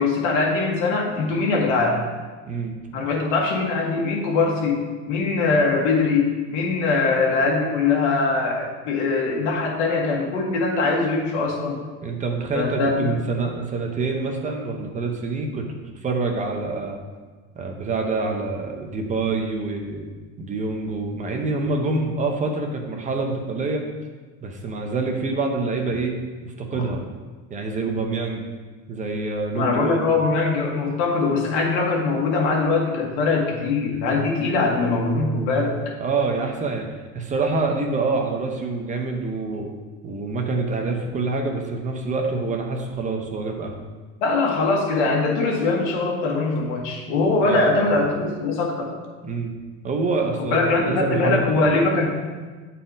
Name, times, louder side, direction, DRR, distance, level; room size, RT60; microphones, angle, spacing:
voice 1, 0.0-2.0 2.9-4.8 5.0-11.8 12.5-13.1 26.7-26.8 29.5-35.8 44.2-48.9 50.4-52.1, left 3 dB, 85° left, 0 dB, 1.6 m, -22 dB
voice 2, 12.0-17.0 17.6-20.0 20.4-23.8 24.4-27.0 27.5-28.5 28.9-30.1 36.0-36.9 37.1-39.7 40.0-43.7 47.4-47.7 49.2-49.5 49.8-51.6, right 3 dB, 25° right, 2 dB, 0.7 m, -26 dB
8.4 x 4.2 x 3.9 m, 1.4 s
cardioid pair, 150°, 32 cm